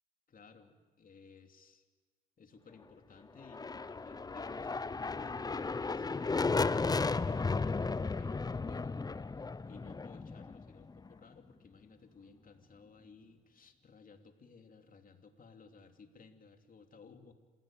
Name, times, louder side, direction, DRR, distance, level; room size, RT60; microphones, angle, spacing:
voice 1, 0.3-1.8 2.4-9.4 9.7-17.3, left 5 dB, 45° left, 5 dB, 2.9 m, -58 dB
sound 1, 3.4-11.2, left 4 dB, 20° left, 0.7 m, -34 dB
27.5 x 17.0 x 9.1 m, 1.5 s
cardioid pair, 90°, 20 cm